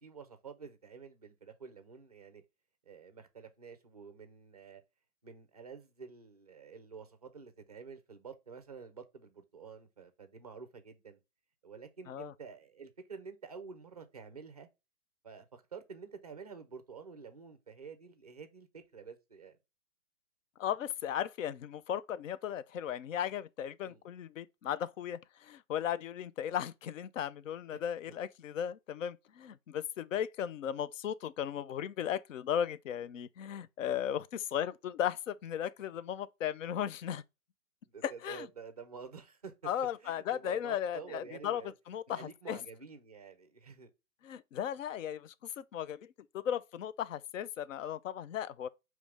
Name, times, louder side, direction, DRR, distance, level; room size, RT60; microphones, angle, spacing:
voice 1, 0.0-2.4 2.9-4.8 5.2-11.2 11.6-14.7 15.2-19.6 23.8-24.0 27.7-27.8 28.1-28.2 37.8-39.7 40.0-41.7 42.1-43.9, right 5 dB, 25° right, 0.4 m, -49 dB
voice 2, 20.6-37.2 38.0-38.5 39.6-41.6 41.9-42.6 44.2-48.7, left 9 dB, 55° left, 0.5 m, -36 dB
5.0 x 3.1 x 3.3 m
hypercardioid pair, 160°, 46 cm